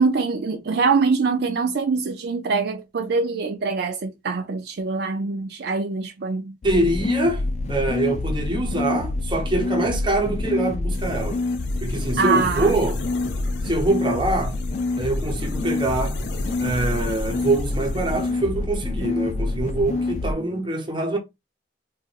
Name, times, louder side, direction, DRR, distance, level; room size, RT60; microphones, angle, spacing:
voice 1, 0.0-6.5 12.2-12.7, right 4 dB, 60° right, 0.4 m, -23 dB
sound 1, 6.6-20.3, left 2 dB, 40° left, 0.3 m, -27 dB
voice 2, 6.6-11.4 11.8-13.0 13.6-14.6 15.0-16.2 16.6-21.2, right 2 dB, 25° right, 0.8 m, -24 dB
sound 2, 10.9-18.3, left 3 dB, 65° left, 0.7 m, -38 dB
sound 3, 15.1-20.6, equal, 15° left, 1.0 m, -41 dB
3.9 x 2.5 x 2.4 m
head